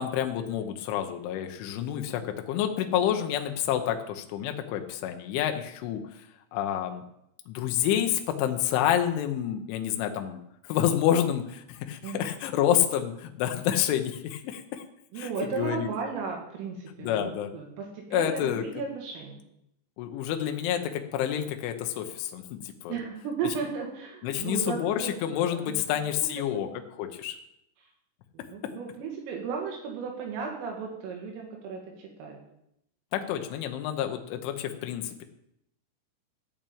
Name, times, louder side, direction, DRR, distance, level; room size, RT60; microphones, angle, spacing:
voice 1, 0.0-6.2 6.5-7.0 7.5-14.8 15.2-15.9 17.0-17.5 18.1-18.8 20.0-23.0 24.2-26.7 27.0-27.4 33.1-35.2, left 10 dB, 75° left, 5 dB, 3.2 m, -28 dB
voice 2, 15.1-19.4 22.9-25.7 26.5-26.8 28.3-32.4, right 5 dB, 75° right, 0 dB, 4.4 m, -35 dB
13.5 x 6.0 x 8.7 m, 0.78 s
omnidirectional pair, 6.0 m